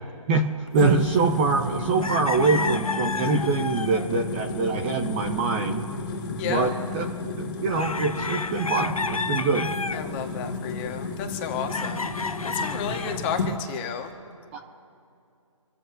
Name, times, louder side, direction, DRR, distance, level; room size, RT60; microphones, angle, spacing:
voice 1, 0.3-5.9 6.4-7.0 7.3-9.7 14.5-14.6, right 4 dB, 20° right, 3 dB, 0.8 m, -24 dB
sound 1, 0.7-13.5, left 3 dB, 40° left, 2.2 m, -32 dB
sound 2, 1.6-1.7 2.0-4.3 7.7-10.1 11.7-13.2, left 4 dB, 85° left, 0.8 m, -31 dB
voice 2, 6.4-6.7 9.9-14.1, left 7 dB, 20° left, 4 dB, 1.5 m, -32 dB
27.0 x 14.0 x 2.7 m, 2.5 s
figure-of-eight pair, 150°, 18 cm